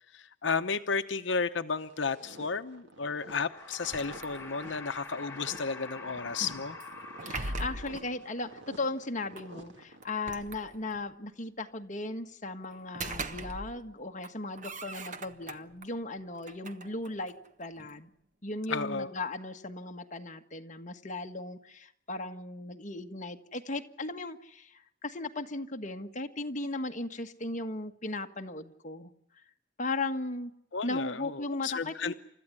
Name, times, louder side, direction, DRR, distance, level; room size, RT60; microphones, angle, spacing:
voice 1, 0.1-6.8 18.7-19.1 30.7-32.1, left 5 dB, 75° left, 8 dB, 0.9 m, -33 dB
sound 1, 1.8-10.4, right 1 dB, 75° right, 2.5 m, -51 dB
sound 2, 3.2-8.3, left 3 dB, 15° left, 2.8 m, -46 dB
sound 3, 3.7-4.8 6.8-8.1 9.4-9.5 10.0-11.1 12.7-13.9 14.2-15.9 16.4-18.0, right 2 dB, 40° right, 1.1 m, -41 dB
voice 2, 7.2-18.1 18.4-29.1 29.8-30.5 30.8-32.1, left 2 dB, 40° left, 5 dB, 1.5 m, -37 dB
29.5 x 14.0 x 9.7 m, 0.75 s
head